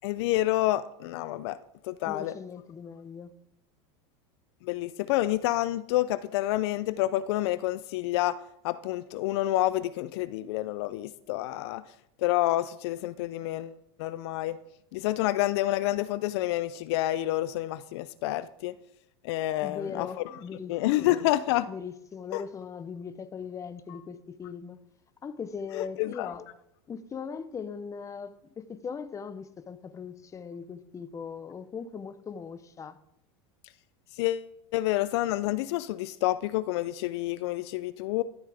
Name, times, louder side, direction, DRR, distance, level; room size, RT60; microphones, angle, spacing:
voice 1, 0.0-1.6 1.8-2.3 4.6-8.4 8.6-11.8 12.2-13.7 14.0-14.6 14.9-18.7 19.2-20.1 20.7-21.7 22.3-22.4 25.7-26.3 34.2-38.2, left 15 dB, 70° left, 0.4 m, -28 dB
voice 2, 2.0-3.3 19.6-21.3 21.6-24.8 25.2-26.6 26.9-33.0, left 6 dB, 20° left, 0.6 m, -39 dB
13.0 x 7.2 x 3.4 m
supercardioid pair, 110°, 15 cm